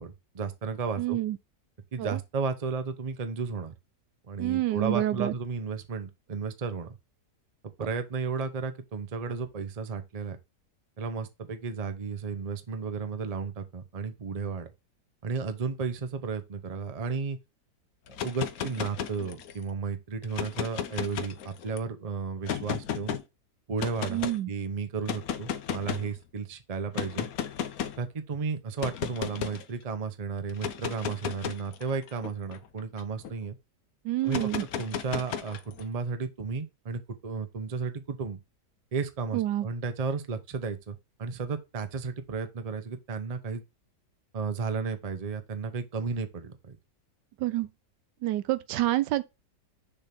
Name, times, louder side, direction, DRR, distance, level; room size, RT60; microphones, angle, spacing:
voice 1, 0.0-1.2 1.9-3.7 4.3-7.0 7.8-10.4 11.0-14.7 15.2-17.4 18.2-23.2 23.7-27.3 28.0-33.6 34.2-34.5 34.8-38.4 38.9-43.6 44.3-46.8, right 5 dB, 30° right, 0.7 m, -33 dB
voice 2, 1.0-1.4 2.0-2.2 4.4-5.3 24.1-24.5 34.0-34.6 39.3-39.7 47.4-47.7 48.2-49.2, right 14 dB, 85° right, 1.3 m, -27 dB
sound 1, 18.1-19.6 20.2-21.8 22.4-23.2 23.8-24.4 25.0-26.1 26.9-28.0 28.8-29.6 30.5-33.3 34.3-35.8, left 8 dB, 65° left, 1.1 m, -34 dB
6.7 x 3.5 x 5.9 m
omnidirectional pair, 1.8 m